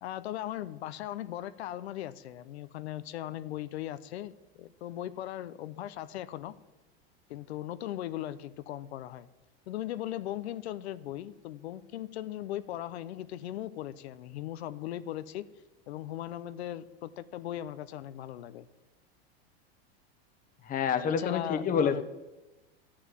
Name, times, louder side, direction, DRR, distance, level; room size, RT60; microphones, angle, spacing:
voice 1, 0.0-6.5 7.3-9.3 9.7-15.4 15.9-18.7 21.1-22.0, left 13 dB, 85° left, 14 dB, 0.8 m, -38 dB
voice 2, 20.7-22.0, left 7 dB, 25° left, 11 dB, 1.0 m, -28 dB
12.5 x 8.8 x 7.4 m, 1.1 s
supercardioid pair, 130°, 31 cm